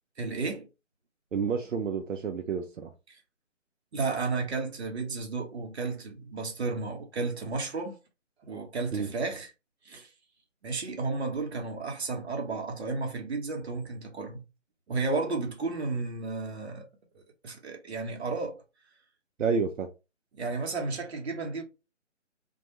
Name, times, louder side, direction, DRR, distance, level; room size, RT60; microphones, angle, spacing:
voice 1, 0.2-0.7 3.9-8.0 8.4-9.5 9.8-10.1 10.6-14.4 14.9-16.9 17.4-18.5 20.3-21.6, right 3 dB, 60° right, 1.0 m, -33 dB
voice 2, 1.3-2.9 8.9-9.1 19.4-19.9, right 5 dB, 85° right, 0.6 m, -29 dB
2.3 x 2.3 x 2.9 m
figure-of-eight pair, 155°, 37 cm